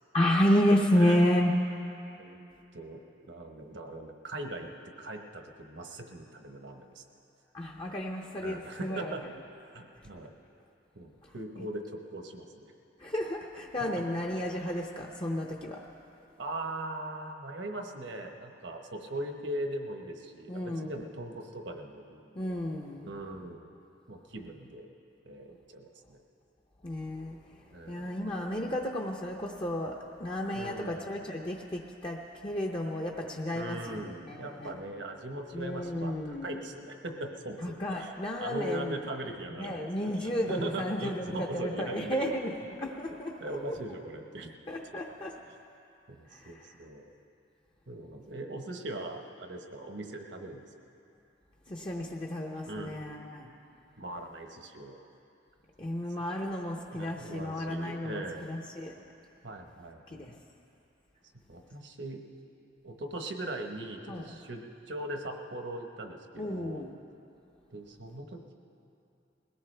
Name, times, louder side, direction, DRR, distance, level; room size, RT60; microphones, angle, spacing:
voice 1, 0.1-1.6 7.5-9.1 11.6-11.7 13.0-15.8 20.5-20.9 22.4-23.1 26.8-27.4 27.9-34.8 35.5-36.6 37.6-39.0 39.6-43.3 43.7-43.8 44.7-45.3 46.3-46.7 51.7-53.5 55.8-58.9 60.1-60.4 64.1-64.3 66.4-66.9, left 1 dB, 30° left, 0 dB, 0.7 m, -31 dB
voice 2, 3.3-4.7 5.0-7.0 8.4-9.2 9.7-10.3 10.9-12.7 13.9-14.0 16.4-22.5 23.0-23.7 24.1-24.9 25.2-26.2 27.7-28.2 30.5-31.0 33.5-38.1 38.4-39.9 40.1-42.4 43.4-44.5 44.9-45.0 46.1-47.1 47.9-50.7 52.7-53.0 54.0-55.0 56.4-58.4 59.4-60.3 61.5-62.2 62.8-66.9 67.7-68.5, right 1 dB, 70° right, 4 dB, 1.2 m, -40 dB
21.0 x 17.5 x 3.4 m, 2.7 s
head